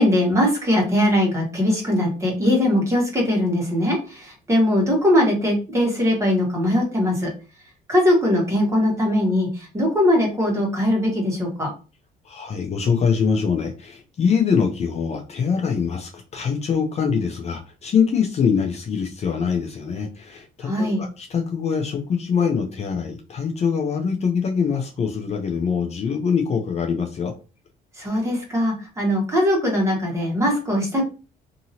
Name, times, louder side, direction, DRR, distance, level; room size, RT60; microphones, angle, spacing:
voice 1, 0.0-7.3 7.9-11.7 20.6-21.0 28.0-31.0, left 1 dB, 15° right, -1 dB, 1.4 m, -20 dB
voice 2, 12.2-27.3, left 6 dB, 40° left, 3 dB, 0.6 m, -23 dB
2.8 x 2.7 x 2.8 m, 0.33 s
cardioid pair, 110°, 17 cm